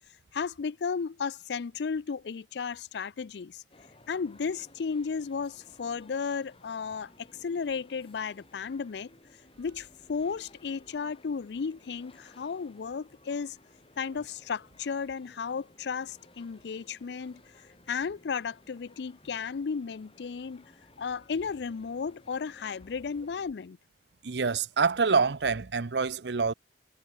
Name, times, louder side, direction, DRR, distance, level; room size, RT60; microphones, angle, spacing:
voice 1, 0.3-3.6 4.1-9.1 9.6-13.6 14.0-17.4 17.9-20.6 21.0-23.8, left 5 dB, 70° left, 0.4 m, -34 dB
sound 1, 3.7-23.5, left 2 dB, 35° left, 4.7 m, -58 dB
voice 2, 24.2-26.5, right 5 dB, 75° right, 0.7 m, -26 dB
head